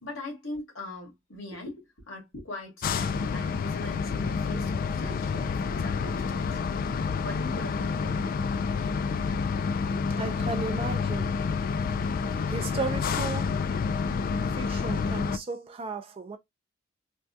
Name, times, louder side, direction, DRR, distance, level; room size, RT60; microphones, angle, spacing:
voice 1, 0.0-6.6 7.2-8.4, left 2 dB, 80° left, 1.8 m, -41 dB
sound 1, 2.8-15.4, left 5 dB, 45° left, 0.3 m, -29 dB
voice 2, 10.2-11.4 12.5-13.6 14.5-16.4, right 3 dB, 30° right, 0.4 m, -35 dB
3.5 x 2.2 x 2.6 m
head